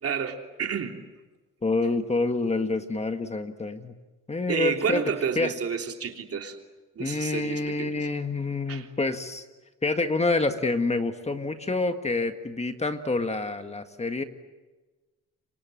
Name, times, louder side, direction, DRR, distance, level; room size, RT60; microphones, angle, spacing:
voice 1, 0.0-1.0 4.5-6.6 6.9-7.9 8.7-8.9, right 6 dB, 50° right, 4 dB, 3.3 m, -30 dB
voice 2, 1.6-3.9 4.3-5.0 5.4-5.5 7.0-9.5 9.8-14.2, left 3 dB, 20° left, 8 dB, 1.8 m, -27 dB
28.5 x 25.0 x 7.8 m, 1.2 s
cardioid pair, 90°, 30 cm